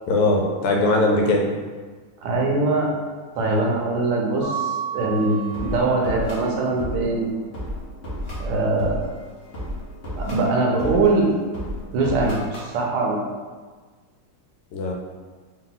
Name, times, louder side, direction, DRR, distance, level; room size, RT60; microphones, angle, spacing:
voice 1, 0.1-1.5 14.7-14.9, left 2 dB, 80° left, 1 dB, 1.5 m, -20 dB
voice 2, 2.2-2.9 3.4-7.3 8.4-9.1 10.2-11.3 11.9-13.3, right 3 dB, 80° right, -1 dB, 1.6 m, -22 dB
Mallet percussion, 4.4-6.2, right 8 dB, 55° right, 0.6 m, -31 dB
sound 1, 5.1-12.7, left 1 dB, 50° left, 0.7 m, -34 dB
3.7 x 2.8 x 3.9 m, 1.4 s
omnidirectional pair, 2.4 m